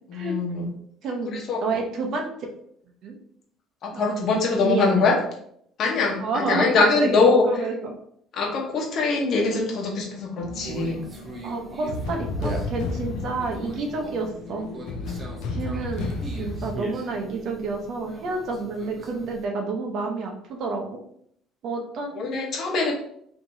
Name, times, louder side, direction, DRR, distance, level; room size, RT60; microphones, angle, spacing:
voice 1, 0.1-0.7 1.3-1.6 3.8-5.2 5.8-7.5 8.3-11.0 22.1-22.9, left 4 dB, 55° left, 0 dB, 1.0 m, -23 dB
voice 2, 1.0-2.3 3.0-3.2 3.9-4.0 4.6-5.1 6.2-7.9 11.4-14.7 15.5-20.8 21.6-22.9, right 3 dB, 60° right, 3 dB, 0.8 m, -29 dB
sound 1, 10.4-16.8, left 3 dB, 85° left, 0.5 m, -33 dB
Conversation, 10.6-19.4, right 2 dB, 25° right, 0.7 m, -40 dB
4.5 x 2.8 x 2.7 m, 0.70 s
cardioid pair, 125°, 0 cm